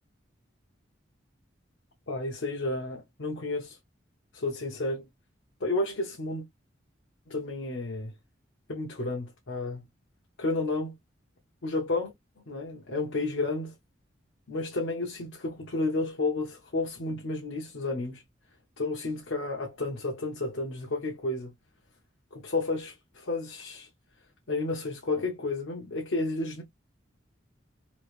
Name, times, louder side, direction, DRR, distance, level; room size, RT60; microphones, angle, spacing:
voice 1, 2.1-3.8 4.3-5.0 5.6-6.5 7.3-8.1 8.7-9.8 10.4-10.9 11.6-12.1 12.5-13.7 14.5-18.2 18.8-21.5 22.3-23.9 24.5-26.6, left 2 dB, 85° left, 0.8 m, -31 dB
3.1 x 2.4 x 3.2 m
head